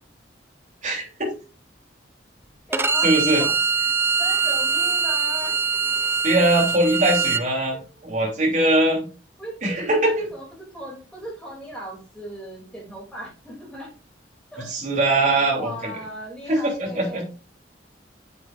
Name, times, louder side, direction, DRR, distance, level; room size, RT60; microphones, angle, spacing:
voice 1, 0.8-1.3 3.0-3.4 6.2-9.1 9.6-10.3 14.7-15.9 16.5-17.2, right 1 dB, 40° right, -1 dB, 3.3 m, -21 dB
voice 2, 2.7-3.1 3.4-3.5 4.2-5.5 7.7-8.2 9.4-9.7 10.2-13.9 14.5-14.7 15.5-17.2, equal, 5° left, -4 dB, 3.0 m, -37 dB
Bowed string instrument, 2.7-7.4, right 5 dB, 15° right, 0.4 m, -23 dB
7.8 x 7.6 x 2.6 m, 0.34 s
head